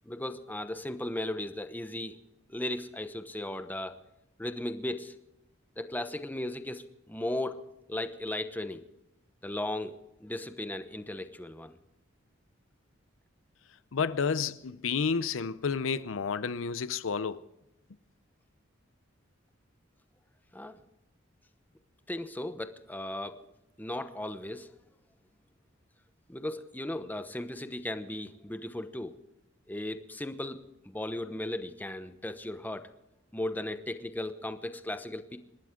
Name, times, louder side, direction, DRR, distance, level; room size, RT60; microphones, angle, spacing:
voice 1, 0.0-2.2 2.5-3.9 4.4-5.2 5.8-7.6 7.9-8.8 9.4-9.9 10.2-11.8 20.5-20.7 22.1-23.4 23.8-24.7 26.3-29.1 29.7-30.6 30.8-32.9 33.3-35.4, left 1 dB, 10° left, 0.9 m, -36 dB
voice 2, 13.9-17.4, left 5 dB, 80° left, 0.6 m, -30 dB
27.5 x 12.5 x 3.7 m
head